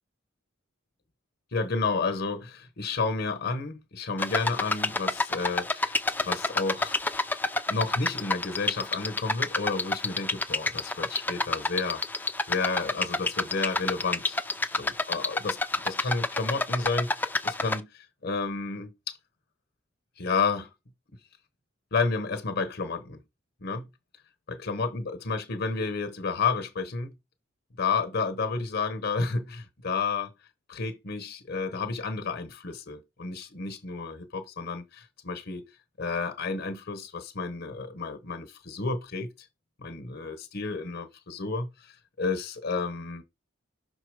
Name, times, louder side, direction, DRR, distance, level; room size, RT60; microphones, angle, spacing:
voice 1, 1.5-6.0 6.2-6.9 7.7-12.0 12.5-14.4 14.7-15.6 15.8-19.2 20.2-20.7 21.9-23.2 23.6-23.9 24.5-27.1 27.8-30.3 30.7-35.7 36.0-39.3 39.8-41.9 42.2-43.2, left 4 dB, 55° left, 1.0 m, -31 dB
sound 1, 4.2-17.8, left 2 dB, 10° left, 0.4 m, -29 dB
5.9 x 4.1 x 4.8 m
head